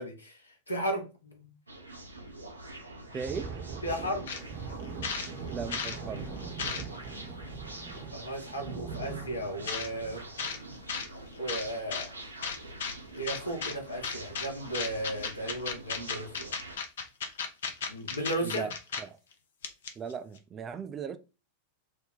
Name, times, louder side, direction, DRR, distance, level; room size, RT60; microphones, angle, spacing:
voice 1, 0.0-1.5 3.8-4.3 8.1-10.3 11.4-12.1 13.1-16.5 17.9-18.7, right 1 dB, 80° left, 1.0 m, -35 dB
sound 1, 1.7-16.8, right 2 dB, 80° right, 0.6 m, -46 dB
Thunder, 3.0-12.1 12.4-12.6 13.0-13.3 13.9-14.3, right 5 dB, 45° right, 0.8 m, -42 dB
voice 2, 3.1-3.5 5.5-6.3 18.4-18.7 19.0-19.2 20.0-21.2, right 6 dB, 25° right, 0.4 m, -37 dB
sound 2, 4.3-4.4 4.8-6.0 6.4-7.1 7.9-8.0 9.7-9.9 10.4-10.6 10.9-11.1 11.5-12.1 12.4-12.9 13.3-13.7 14.0-14.5 14.7-19.0 19.3-19.4 19.6-20.1, left 5 dB, 60° left, 0.6 m, -34 dB
3.3 x 2.2 x 3.7 m
figure-of-eight pair, 90°, 0 cm